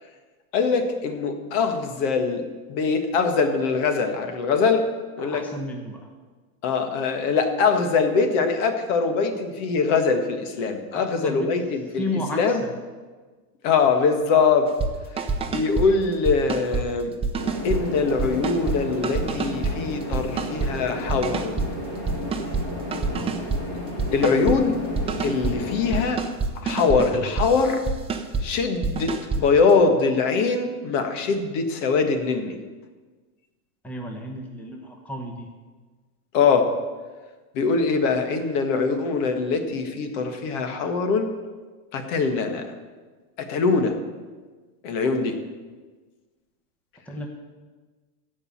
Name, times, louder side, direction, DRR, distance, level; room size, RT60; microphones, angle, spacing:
voice 1, 0.5-2.4 2.7-4.9 5.2-5.5 6.6-12.0 12.3-12.6 13.6-14.7 15.5-17.1 17.6-21.6 24.1-24.8 25.2-26.2 26.6-27.8 28.4-32.6 36.3-36.7 37.5-41.3 41.9-42.7 43.4-44.0 44.8-45.4, left 4 dB, 55° left, 6 dB, 1.8 m, -22 dB
voice 2, 5.2-6.1 10.6-11.5 12.0-12.8 23.1-23.3 33.8-35.5 47.1-47.3, left 1 dB, 5° left, 1 dB, 1.0 m, -33 dB
sound 1, 14.7-14.9 15.2-15.9 16.2-16.8 17.2-17.8 18.2-18.8 19.0-19.7 20.1-20.7 21.1-21.7 22.1-22.6 22.9-23.6 24.0-24.6 24.9-25.5 25.9-28.4 28.8-29.4, right 4 dB, 15° right, 0.7 m, -26 dB
sound 2, 17.4-26.0, left 1 dB, 30° left, 5.1 m, -33 dB
15.0 x 5.4 x 8.6 m, 1.4 s
supercardioid pair, 150°, 45 cm